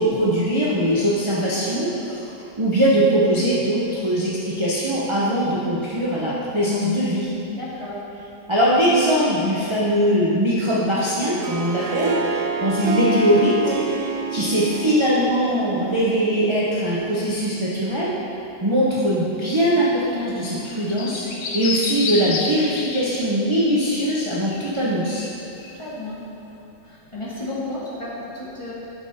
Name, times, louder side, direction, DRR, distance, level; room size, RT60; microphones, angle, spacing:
voice 1, 0.0-2.3 2.6-7.3 8.5-18.1 18.6-25.3, equal, 30° right, -8 dB, 0.5 m, -21 dB
voice 2, 7.5-8.0 25.7-26.2 26.8-28.7, left 1 dB, 15° left, -9 dB, 1.9 m, -33 dB
Harp, 11.2-16.4, right 4 dB, 90° right, 0.6 m, -28 dB
sound 1, 20.0-23.2 23.5-23.6 23.9-24.1 24.5-24.7 25.1-25.3 25.6-25.8, left 4 dB, 65° left, 1.2 m, -30 dB
11.5 x 5.4 x 4.2 m, 2.9 s
omnidirectional pair, 2.1 m